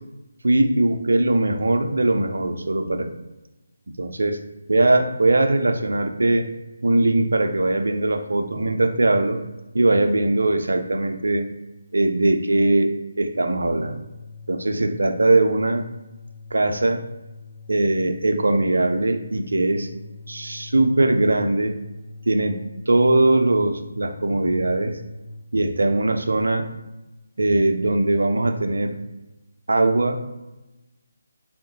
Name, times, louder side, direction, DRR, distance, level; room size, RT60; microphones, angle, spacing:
voice 1, 0.4-3.1 4.0-4.4 4.7-6.5 6.8-9.4 9.7-11.5 11.9-12.9 13.2-14.0 14.5-15.8 16.5-17.0 17.7-19.9 20.3-21.8 22.3-22.6 22.9-24.9 25.5-26.7 27.4-29.0 29.7-30.3, right 2 dB, 70° right, 6 dB, 0.4 m, -20 dB
sound 1, 13.6-25.5, left 4 dB, 35° left, 0.3 m, -42 dB
3.7 x 2.1 x 2.7 m, 1.0 s
figure-of-eight pair, 150°, 0 cm